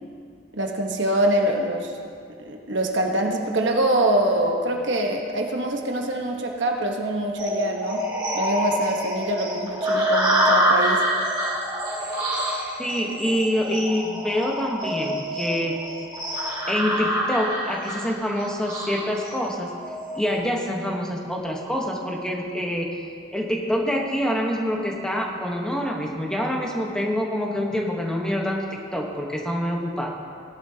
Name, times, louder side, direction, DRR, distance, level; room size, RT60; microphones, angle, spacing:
voice 1, 0.5-1.9 2.4-8.1 8.3-11.1, right 1 dB, 60° right, 2 dB, 1.1 m, -24 dB
sound 1, 7.4-20.4, equal, 20° right, 2.2 m, -26 dB
voice 2, 12.8-15.8 16.7-19.7 20.2-22.9 23.3-30.1, equal, 5° left, -1 dB, 1.1 m, -26 dB
18.0 x 11.0 x 2.8 m, 2.5 s
head